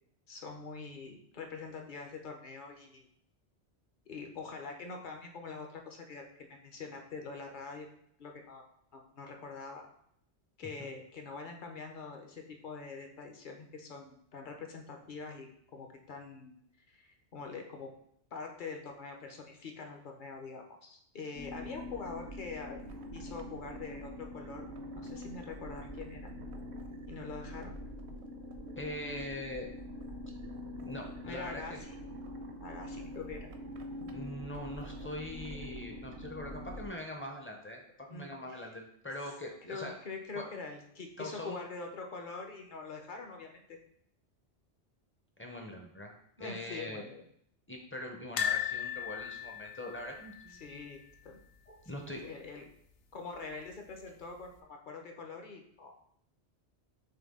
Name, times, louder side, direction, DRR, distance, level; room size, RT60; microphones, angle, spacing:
voice 1, 0.3-3.1 4.1-7.9 8.2-8.6 8.9-9.8 10.6-16.5 16.9-17.9 18.3-22.8 23.1-24.7 25.0-26.3 27.1-27.8 31.2-32.0 32.6-33.5 38.1-38.7 39.7-43.8 46.4-47.2 50.5-51.0 51.2-51.4 51.9-52.6 53.1-55.9, left 4 dB, 50° left, 3 dB, 0.7 m, -44 dB
sound 1, 21.3-36.9, equal, 75° right, 0.9 m, -44 dB
voice 2, 28.8-29.7 30.8-31.8 34.1-39.9 40.4-40.5 41.2-41.6 45.4-46.1 46.4-47.0 47.7-50.9 51.7-52.2, left 1 dB, 15° left, 1 dB, 0.4 m, -42 dB
sound 2, 48.4-51.4 51.7-51.9 52.1-52.2 53.5-54.0 54.5-54.6, left 9 dB, 85° left, 0.9 m, -37 dB
6.5 x 2.2 x 3.6 m, 0.69 s
omnidirectional pair, 1.1 m